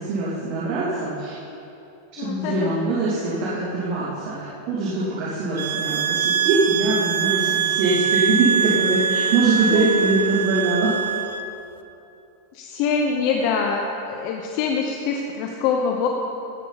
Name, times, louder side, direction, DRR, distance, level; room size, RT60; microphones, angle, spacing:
voice 1, 0.0-1.4 2.2-10.9, right 3 dB, 50° right, -9 dB, 2.8 m, -23 dB
voice 2, 2.2-2.7 9.7-9.9 12.5-16.1, left 5 dB, 45° left, 1 dB, 0.9 m, -24 dB
sound 1, 5.6-11.4, right 7 dB, 85° right, 0.6 m, -23 dB
17.5 x 8.2 x 4.1 m, 2.8 s
supercardioid pair, 150°, 0 cm